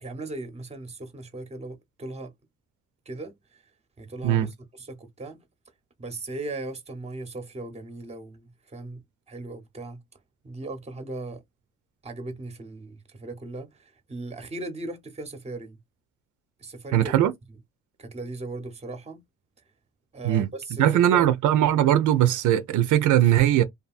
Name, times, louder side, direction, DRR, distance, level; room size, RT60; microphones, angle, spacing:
voice 1, 0.0-2.3 3.1-3.6 4.0-5.4 6.0-10.0 10.4-11.4 12.0-15.8 16.6-17.3 18.0-19.2 20.1-21.3, right 2 dB, 20° right, 0.8 m, -38 dB
voice 2, 16.9-17.3 20.2-20.5 20.8-23.6, right 12 dB, 80° right, 0.5 m, -20 dB
2.7 x 2.4 x 2.4 m
cardioid pair, 90°, 30 cm